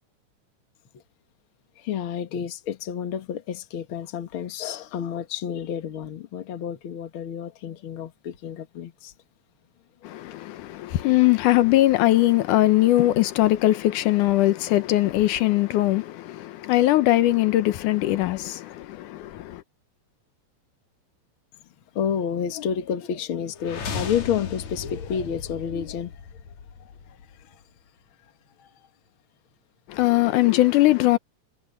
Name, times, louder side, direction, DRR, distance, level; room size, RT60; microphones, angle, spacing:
voice 1, 1.8-9.1 21.9-26.2 26.8-27.6 28.6-28.7, left 8 dB, 50° left, 2.0 m, -30 dB
voice 2, 10.0-19.6 29.9-31.2, left 16 dB, 85° left, 2.4 m, -21 dB
sound 1, 23.6-27.5, left 5 dB, 65° left, 3.6 m, -36 dB
omnidirectional pair, 3.5 m